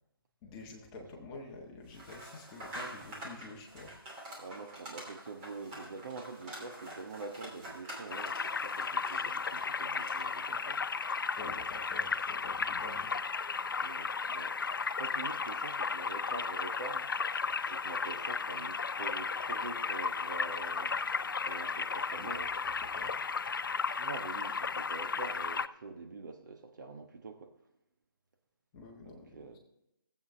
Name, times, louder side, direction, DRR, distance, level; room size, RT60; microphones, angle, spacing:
voice 1, 0.4-4.0 11.4-13.2 22.2-22.3 22.6-23.1 28.7-29.6, left 2 dB, 15° left, 1.4 m, -48 dB
sound 1, 1.9-10.4, right 1 dB, 20° right, 2.8 m, -47 dB
voice 2, 4.4-10.9 13.8-14.6 15.0-20.9 21.4-22.5 24.0-27.5 29.0-29.6, right 3 dB, 50° right, 1.2 m, -45 dB
sound 2, 8.1-25.7, left 5 dB, 60° left, 0.5 m, -34 dB
17.5 x 8.2 x 3.4 m
figure-of-eight pair, 155°, 12 cm